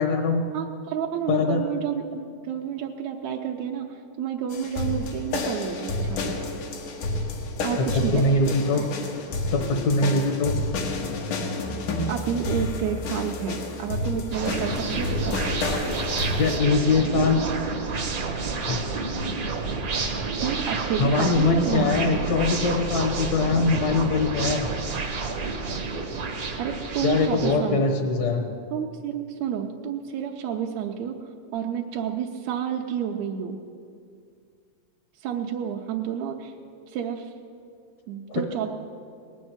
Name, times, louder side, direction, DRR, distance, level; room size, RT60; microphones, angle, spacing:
voice 1, 0.0-0.4 1.3-1.6 7.8-8.8 9.5-10.5 16.4-17.4 18.7-18.8 21.0-24.7 27.0-28.4 38.3-38.4, left 3 dB, 65° left, 2 dB, 2.3 m, -22 dB
voice 2, 0.5-6.4 7.6-8.9 12.1-15.5 20.4-22.2 26.6-28.0 28.7-31.1 31.5-33.6 35.2-36.5 36.9-37.3 38.1-38.7, right 8 dB, 75° right, 1 dB, 1.9 m, -30 dB
sound 1, 4.5-16.6, left 2 dB, 90° left, 2.9 m, -30 dB
sound 2, 14.3-27.6, right 3 dB, 50° right, 1.0 m, -29 dB
19.0 x 6.3 x 9.5 m, 2.3 s
omnidirectional pair, 3.5 m